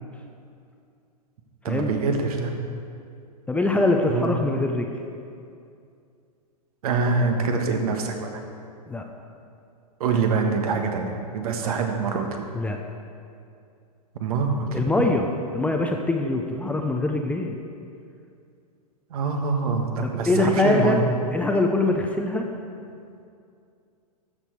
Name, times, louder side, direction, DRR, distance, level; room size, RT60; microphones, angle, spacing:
voice 1, 1.6-2.5 4.1-4.2 6.8-8.4 10.0-12.3 14.2-14.8 19.1-21.0, right 4 dB, 65° right, 4 dB, 1.5 m, -25 dB
voice 2, 3.5-4.9 8.9-9.0 11.6-11.8 12.5-12.8 14.7-15.3 15.5-17.6 20.0-21.0 21.3-22.5, left 2 dB, 5° left, 3 dB, 0.6 m, -23 dB
13.0 x 6.7 x 4.7 m, 2.4 s
hypercardioid pair, 115°, 21 cm